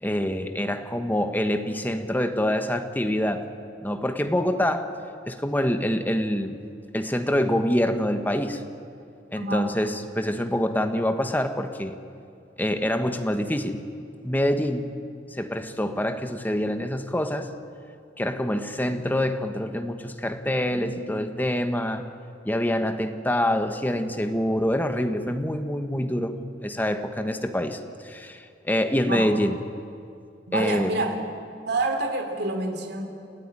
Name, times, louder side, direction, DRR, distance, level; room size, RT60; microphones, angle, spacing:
voice 1, 0.0-3.5 3.8-4.9 5.3-6.6 6.9-8.6 9.3-12.0 12.6-13.8 14.2-14.9 15.3-17.5 18.2-22.1 22.4-29.6 30.5-30.9, left 1 dB, 10° left, 7 dB, 1.3 m, -26 dB
voice 2, 9.3-9.7 29.0-29.3 30.5-31.2 31.7-33.0, right 2 dB, 60° right, 5 dB, 3.0 m, -27 dB
30.0 x 14.0 x 10.0 m, 2.4 s
head